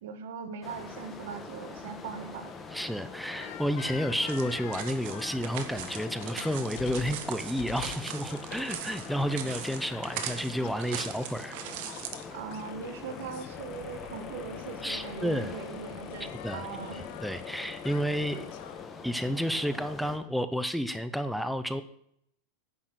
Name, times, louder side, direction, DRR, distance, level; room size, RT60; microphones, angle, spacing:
voice 1, 0.0-2.5 12.3-17.1, right 6 dB, 75° right, 9 dB, 1.6 m, -40 dB
sound 1, 0.6-20.2, left 4 dB, 20° left, 1.5 m, -44 dB
voice 2, 2.7-11.6 14.8-15.5 16.4-18.5 19.0-21.8, equal, ahead, 11 dB, 0.7 m, -31 dB
sound 2, 3.4-11.5 11.8-18.9, left 11 dB, 55° left, 1.2 m, -45 dB
sound 3, 4.3-12.2, right 10 dB, 60° right, 1.6 m, -40 dB
10.0 x 6.5 x 8.0 m, 0.70 s
supercardioid pair, 145°, 0 cm